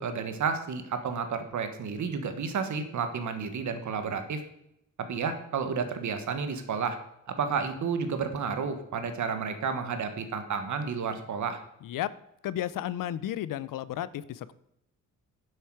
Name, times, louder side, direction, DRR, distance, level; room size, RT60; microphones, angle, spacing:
voice 1, 0.0-4.4 5.1-7.0 7.3-11.6, right 5 dB, 65° right, 8 dB, 1.4 m, -31 dB
voice 2, 11.8-12.1 12.4-14.5, left 12 dB, 85° left, 17 dB, 0.6 m, -33 dB
10.0 x 8.0 x 4.7 m, 0.79 s
wide cardioid pair, 155°, 32 cm